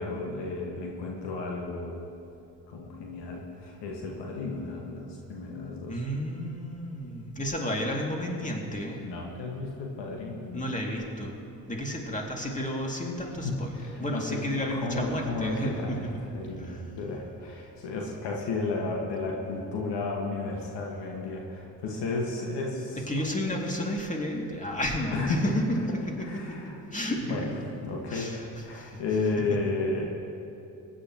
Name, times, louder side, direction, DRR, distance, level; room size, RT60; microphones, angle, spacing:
voice 1, 0.0-2.0 2.7-6.0 9.0-10.6 13.4-15.9 16.3-23.5 25.1-25.5 26.2-26.8 27.3-27.4 27.8-30.1, left 3 dB, 60° left, -1 dB, 1.8 m, -33 dB
voice 2, 5.9-9.1 10.5-11.4 11.7-13.7 14.0-16.0 16.6-16.8 23.1-27.5 28.1-28.4 28.7-29.0, equal, 15° left, 0 dB, 2.5 m, -32 dB
23.0 x 10.0 x 3.1 m, 2.7 s
hypercardioid pair, 50°, 47 cm